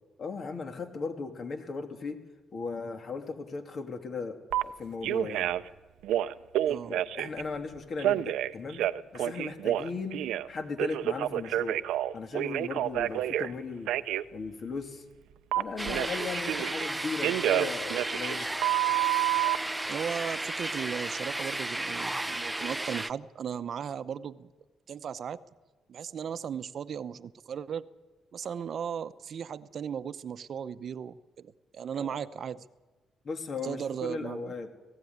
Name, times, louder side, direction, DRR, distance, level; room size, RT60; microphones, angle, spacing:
voice 1, 0.2-2.2 2.5-5.6 6.9-8.8 9.1-10.2 10.5-11.8 12.1-13.9 14.3-15.0 15.5-18.5 32.0-32.2 33.2-34.7, left 4 dB, 50° left, 6 dB, 2.6 m, -37 dB
Telephone, 4.5-4.6 5.0-5.7 6.0-7.4 8.0-10.5 10.8-13.5 13.9-14.2 15.5-16.9 17.2-19.6, right 13 dB, 85° right, 0.6 m, -29 dB
sound 1, 15.8-23.1, right 1 dB, 10° right, 0.6 m, -34 dB
voice 2, 19.9-24.5 24.9-25.4 25.9-27.8 28.3-32.6 33.6-34.5, right 7 dB, 55° right, 13 dB, 0.8 m, -36 dB
19.0 x 16.0 x 9.5 m, 1.2 s
cardioid pair, 90°, 0 cm